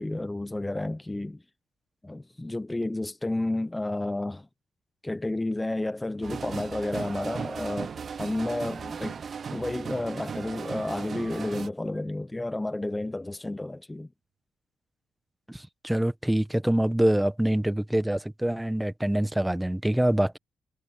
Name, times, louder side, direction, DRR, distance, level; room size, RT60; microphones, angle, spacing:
voice 1, 0.0-1.4 2.0-4.5 5.0-9.2 9.5-14.1, left 2 dB, 10° left, 1.0 m, -31 dB
sound 1, 6.2-11.7, right 6 dB, 45° right, 0.6 m, -36 dB
Bowed string instrument, 8.3-12.3, right 8 dB, 60° right, 7.4 m, -58 dB
voice 2, 15.5-20.4, right 1 dB, 5° right, 1.2 m, -25 dB
cardioid pair, 90°, 0 cm